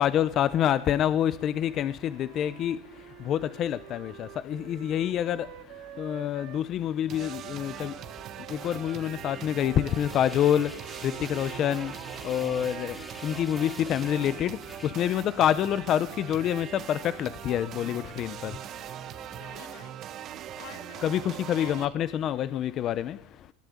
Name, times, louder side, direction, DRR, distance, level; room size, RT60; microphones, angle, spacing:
voice 1, 0.0-19.5 21.0-23.5, left 10 dB, 30° left, 0.8 m, -28 dB
Wind instrument woodwind instrument, 1.2-6.7 7.1-13.0, right 14 dB, 50° right, 2.1 m, -49 dB
sound 1, 7.1-21.9, right 11 dB, 30° right, 1.4 m, -41 dB
sound 2, 8.6-15.0, equal, ahead, 4.0 m, -46 dB
voice 2, 19.3-21.1 21.5-21.9, left 11 dB, 55° left, 3.3 m, -48 dB
20.5 x 17.0 x 9.5 m
supercardioid pair, 160°, 0 cm